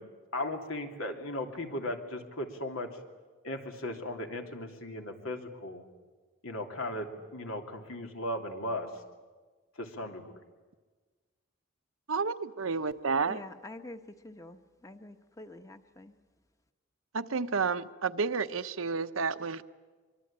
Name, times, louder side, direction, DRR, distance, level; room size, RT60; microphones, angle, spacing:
voice 1, 0.3-2.9 3.4-5.8 6.4-8.9 9.8-10.3, left 1 dB, 85° left, 3.0 m, -37 dB
voice 2, 12.1-13.4 17.1-19.6, right 5 dB, 80° right, 0.9 m, -31 dB
voice 3, 13.3-16.1, left 2 dB, 15° left, 1.1 m, -47 dB
24.0 x 24.0 x 8.8 m
head